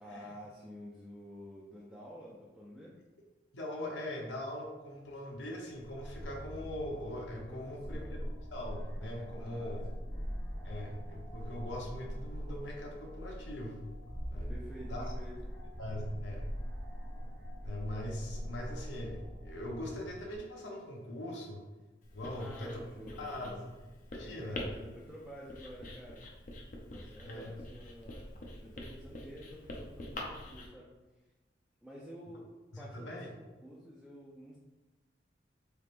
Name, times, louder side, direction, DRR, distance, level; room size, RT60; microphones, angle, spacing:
voice 1, 0.0-3.0 7.5-8.2 9.4-10.0 14.5-15.3 22.3-23.7 24.2-26.2 26.9-28.3 28.6-30.9 31.8-32.5 32.8-34.6, equal, ahead, -6 dB, 0.4 m, -50 dB
voice 2, 3.5-8.2 8.5-9.9 10.6-13.9 14.3-14.5 14.9-15.1 15.8-16.5 17.6-21.7 22.1-22.8 23.2-23.5 24.1-24.7 27.2-27.5 32.7-33.3, left 1 dB, 85° left, 0 dB, 0.7 m, -41 dB
sound 1, 5.8-20.4, equal, 25° left, 1.0 m, -42 dB
Writing, 22.0-30.7, left 1 dB, 45° left, 0.6 m, -46 dB
4.2 x 3.4 x 2.5 m, 1.2 s
head